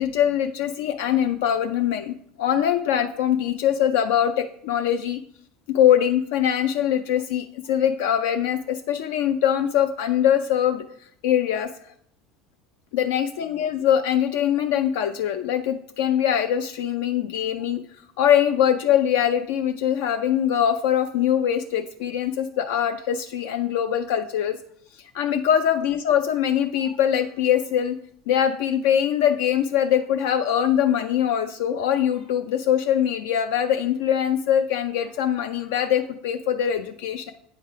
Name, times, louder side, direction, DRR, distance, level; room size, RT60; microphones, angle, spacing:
voice 1, 0.0-5.2 5.7-10.8 11.2-11.7 12.9-17.8 18.2-24.6 25.1-28.0 28.3-37.3, left 10 dB, 80° left, 7 dB, 0.4 m, -22 dB
8.8 x 3.3 x 4.6 m, 0.66 s
supercardioid pair, 110°, 0 cm